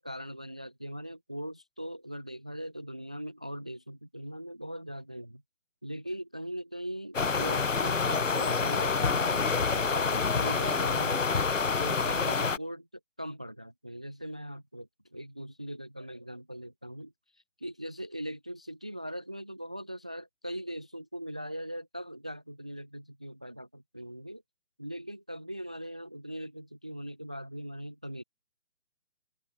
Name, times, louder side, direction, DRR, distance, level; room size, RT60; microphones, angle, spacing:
voice 1, 0.0-5.4 5.8-11.3 11.8-12.9 13.2-24.4 24.8-28.2, equal, 5° right, 0.9 m, -40 dB
sound 1, 7.1-12.6, left 4 dB, 70° left, 3.2 m, -27 dB
open air
hypercardioid pair, 180°, 40 cm